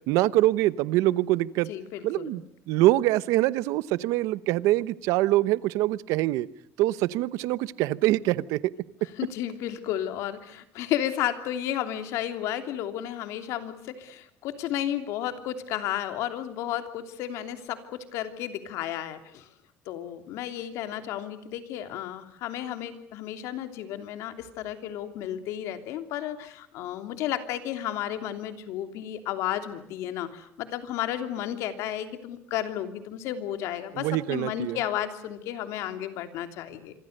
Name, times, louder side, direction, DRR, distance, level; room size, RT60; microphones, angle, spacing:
voice 1, 0.1-1.7 2.0-6.5 6.8-8.6 33.9-34.8, right 16 dB, 85° right, 17 dB, 0.9 m, -24 dB
voice 2, 1.7-2.4 9.2-19.5 19.9-36.9, left 11 dB, 70° left, 8 dB, 3.0 m, -33 dB
26.5 x 25.0 x 6.7 m, 0.71 s
cardioid pair, 170°, 5 cm